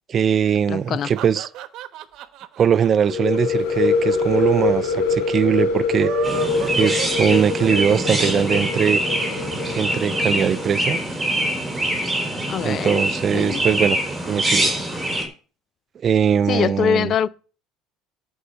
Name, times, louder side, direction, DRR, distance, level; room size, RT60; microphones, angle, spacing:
voice 1, 0.1-1.5 2.6-6.1 6.8-9.0 9.7-11.0 12.6-14.0 14.3-14.7 16.0-17.1, right 8 dB, 40° right, 0.5 m, -21 dB
voice 2, 0.7-1.1 12.5-13.0 13.3-13.6 16.5-17.3, left 8 dB, 45° left, 0.5 m, -23 dB
sound 1, 0.8-4.1 4.4-4.5 4.7-4.8 5.8-7.9, right 13 dB, 60° right, 1.1 m, -33 dB
sound 2, 3.1-10.7, left 4 dB, 70° left, 3.3 m, -24 dB
Chirp tweet, 6.2-15.2, right 1 dB, 15° right, 4.2 m, -24 dB
13.0 x 5.5 x 6.8 m
supercardioid pair, 95°, 0 cm